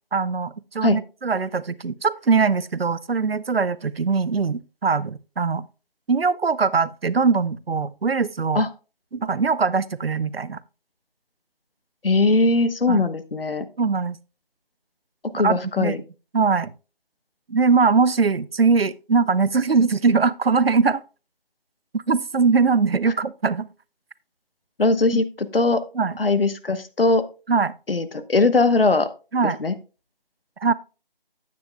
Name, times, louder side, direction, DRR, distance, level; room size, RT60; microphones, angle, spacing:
voice 1, 0.1-5.6 6.1-8.6 9.1-10.6 12.9-13.0 13.8-14.2 15.3-15.9 16.3-16.7 17.5-21.0 21.9-23.7 25.9-26.1 27.5-27.7 29.3-29.6 30.6-30.7, right 5 dB, 85° right, 0.7 m, -21 dB
voice 2, 12.0-13.6 15.3-16.0 24.8-25.8 26.2-27.2 27.9-29.1 29.4-29.7, left 3 dB, 75° left, 1.1 m, -20 dB
10.5 x 9.4 x 2.3 m
figure-of-eight pair, 175°, 29 cm